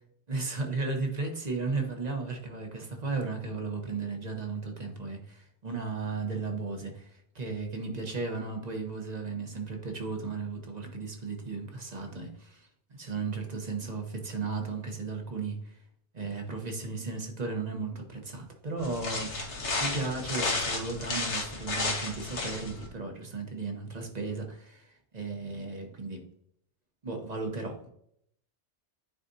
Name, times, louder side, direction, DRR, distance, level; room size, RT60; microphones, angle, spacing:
voice 1, 0.3-12.7 13.0-15.8 16.1-19.3 19.8-24.9 25.1-26.2 27.0-27.9, right 4 dB, 40° right, 3 dB, 1.1 m, -35 dB
sound 1, 18.8-22.9, left 3 dB, 80° left, 1.6 m, -32 dB
9.7 x 4.1 x 2.7 m, 0.70 s
omnidirectional pair, 1.2 m